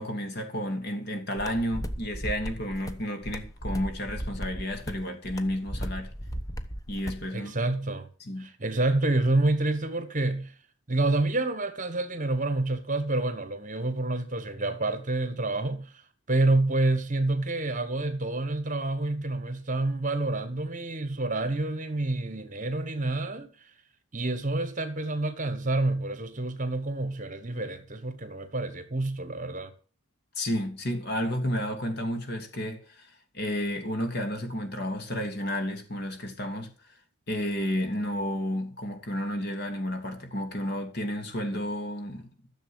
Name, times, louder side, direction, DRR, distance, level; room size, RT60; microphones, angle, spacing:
voice 1, 0.0-6.1 6.9-7.5 8.2-8.5 30.4-33.1 33.3-36.7 37.3-42.3, equal, 50° left, 3.1 m, -31 dB
sound 1, 1.4-7.3, equal, 15° left, 1.0 m, -36 dB
voice 2, 7.3-8.1 8.4-10.5 10.9-16.0 16.3-23.7 24.1-29.7, right 2 dB, 35° right, 1.4 m, -28 dB
14.0 x 7.3 x 8.0 m
head